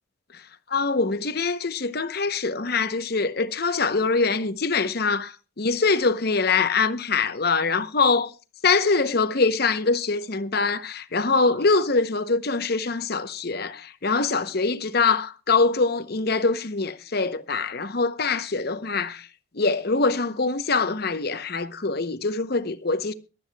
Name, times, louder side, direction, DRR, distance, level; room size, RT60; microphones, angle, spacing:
voice 1, 0.7-8.3 8.6-19.3 19.5-23.1, left 4 dB, 50° left, 0.9 m, -24 dB
23.0 x 12.5 x 2.3 m
head